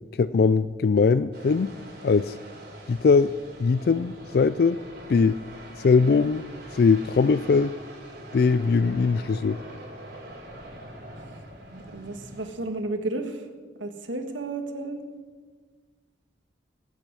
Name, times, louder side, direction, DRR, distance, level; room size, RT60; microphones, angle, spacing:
voice 1, 0.2-1.7 2.0-2.4 2.9-3.3 3.6-4.8 5.1-5.3 5.8-6.4 6.8-7.7 8.3-9.6, left 4 dB, 55° left, 14 dB, 0.3 m, -21 dB
sound 1, 1.3-12.5, right 1 dB, 55° right, 4.5 m, -43 dB
voice 2, 11.7-13.5 13.8-15.0, right 2 dB, 90° right, 6 dB, 1.7 m, -32 dB
19.5 x 9.1 x 6.2 m, 1.5 s
head